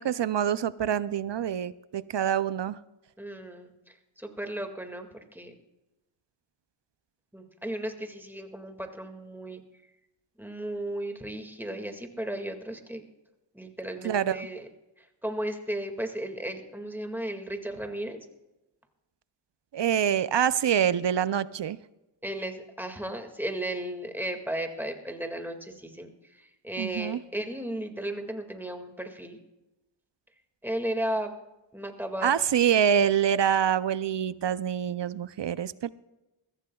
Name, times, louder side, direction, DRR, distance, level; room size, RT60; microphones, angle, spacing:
voice 1, 0.0-2.8 14.0-14.4 19.7-21.8 26.8-27.2 32.2-35.9, right 9 dB, 60° right, 17 dB, 0.6 m, -26 dB
voice 2, 3.2-5.5 7.3-9.6 10.4-13.0 13.5-14.7 15.0-18.2 22.2-29.4 30.6-31.3 31.7-32.3, right 1 dB, 5° right, 4 dB, 2.0 m, -35 dB
22.0 x 15.0 x 2.3 m, 1.0 s
cardioid pair, 45°, 49 cm